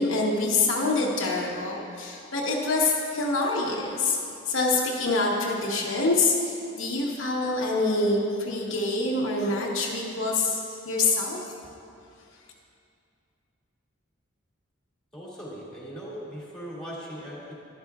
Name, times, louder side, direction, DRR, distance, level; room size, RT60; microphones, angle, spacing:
voice 1, 0.0-4.2 4.5-11.4, left 3 dB, 70° left, -2 dB, 1.1 m, -26 dB
voice 2, 15.1-17.5, equal, 5° left, -7 dB, 2.2 m, -39 dB
11.5 x 11.5 x 2.4 m, 2.5 s
head